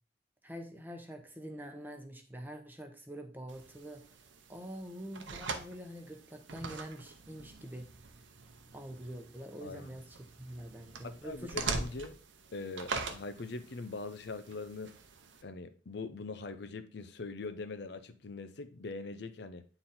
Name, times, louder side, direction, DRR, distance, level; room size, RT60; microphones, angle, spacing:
voice 1, 0.4-4.0 4.5-7.9 8.7-11.6, equal, 10° right, 0.9 m, -45 dB
sound 1, 3.5-15.4, right 4 dB, 75° right, 0.8 m, -43 dB
voice 2, 9.6-10.0 11.0-12.1 12.5-14.9 15.4-19.7, left 3 dB, 60° left, 0.6 m, -42 dB
9.3 x 3.9 x 4.2 m
head